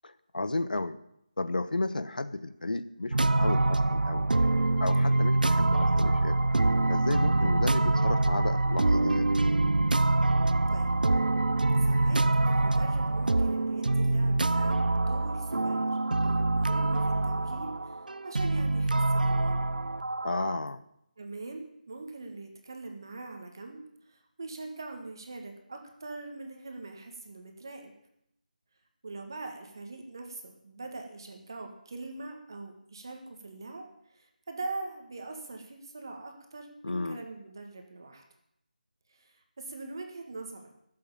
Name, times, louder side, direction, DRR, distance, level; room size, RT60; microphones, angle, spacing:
voice 1, 0.0-1.0 1.4-4.3 4.8-6.4 6.9-9.3 20.2-20.8 36.8-37.2, left 2 dB, 75° left, 13 dB, 1.1 m, -33 dB
sound 1, 3.1-20.6, right 2 dB, 85° right, 0.7 m, -25 dB
voice 2, 11.8-15.9 16.2-18.0 18.2-19.7 21.2-23.8 24.1-27.9 29.0-38.2 39.1-40.7, right 3 dB, 25° right, 4 dB, 1.7 m, -42 dB
13.0 x 7.8 x 8.9 m, 0.77 s
figure-of-eight pair, 180°, 5 cm